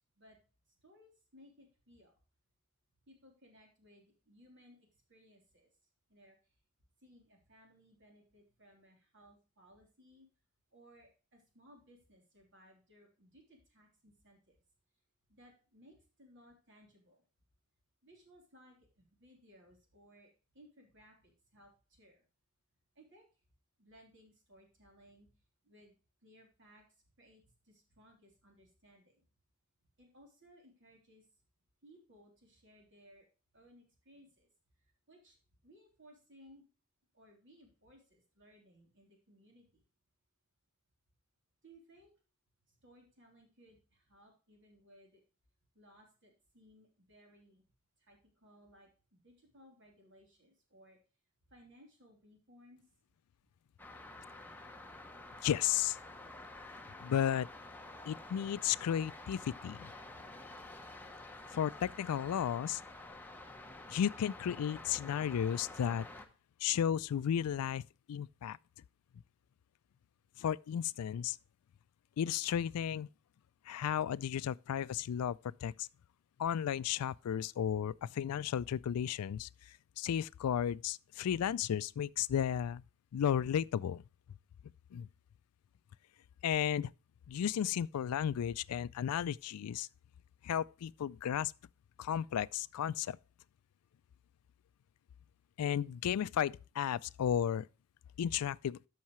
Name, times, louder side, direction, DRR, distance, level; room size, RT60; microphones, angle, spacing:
voice 1, 0.8-2.1 3.1-4.8 5.1-5.7 6.1-6.4 7.0-10.3 10.7-14.6 15.3-17.2 18.0-22.2 22.9-23.3 23.8-25.3 25.6-25.9 26.2-26.8 27.2-29.2 30.0-31.2 31.8-33.3 33.5-34.5 35.1-35.4 35.6-36.6 37.1-39.8 41.6-42.1 42.8-45.1 45.7-47.6 48.0-51.0 51.5-52.8, equal, 55° right, 3.4 m, -62 dB
sound 1, 53.8-66.3, left 2 dB, 10° left, 0.9 m, -50 dB
voice 2, 55.4-56.0 57.0-57.5 58.1-59.9 61.5-62.8 63.9-66.1 66.6-68.6 70.4-71.4 72.2-73.1 73.7-75.9 76.4-79.5 80.0-82.8 83.1-84.0 84.9-85.1 86.4-86.9 87.3-89.9 90.4-91.5 92.0-93.2 95.6-97.7 98.2-98.8, left 9 dB, 90° left, 0.3 m, -34 dB
13.0 x 5.6 x 3.1 m
head